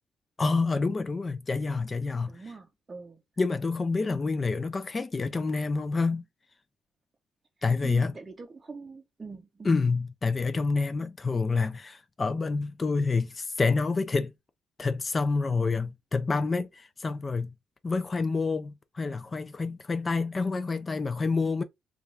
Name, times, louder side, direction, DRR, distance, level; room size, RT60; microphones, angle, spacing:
voice 1, 0.4-2.4 3.4-6.2 7.6-8.1 9.6-14.3 14.8-17.5 17.8-21.6, left 4 dB, 30° left, 0.3 m, -28 dB
voice 2, 2.3-3.2 7.8-9.7, right 4 dB, 25° right, 0.5 m, -43 dB
2.3 x 2.3 x 3.0 m
cardioid pair, 90°, 0 cm